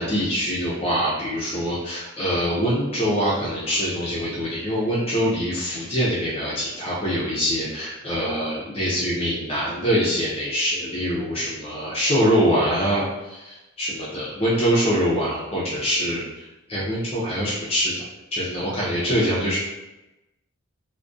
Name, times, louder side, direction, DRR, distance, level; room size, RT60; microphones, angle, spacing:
voice 1, 0.0-17.9 18.3-19.6, equal, 30° left, -7 dB, 0.5 m, -24 dB
2.4 x 2.1 x 2.4 m, 0.99 s
head